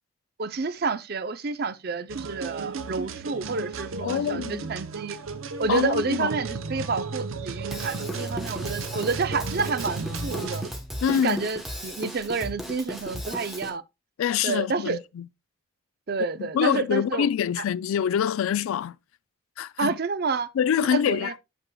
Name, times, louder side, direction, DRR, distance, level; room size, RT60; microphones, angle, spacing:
voice 1, 0.4-5.2 5.6-10.6 11.1-13.8 14.4-15.0 16.1-17.3 19.8-20.5 20.8-21.4, right 4 dB, 50° right, 0.5 m, -29 dB
sound 1, 2.1-10.7, right 4 dB, 85° right, 0.7 m, -34 dB
voice 2, 4.0-4.7 5.7-6.3 11.0-11.4 14.2-15.3 16.4-19.0 19.6-20.0 20.5-21.4, left 8 dB, 85° left, 0.3 m, -25 dB
Drum kit / Drum, 7.7-13.7, equal, ahead, 1.0 m, -36 dB
8.7 x 6.7 x 2.2 m
head